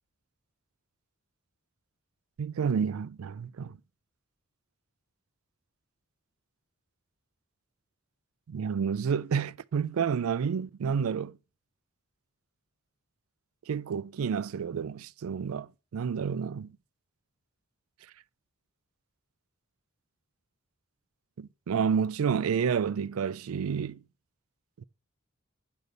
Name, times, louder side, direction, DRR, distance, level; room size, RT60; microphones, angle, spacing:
voice 1, 2.4-3.8 8.5-11.3 13.7-16.7 21.4-24.0, right 6 dB, 85° right, 0.4 m, -30 dB
9.4 x 3.8 x 6.7 m
head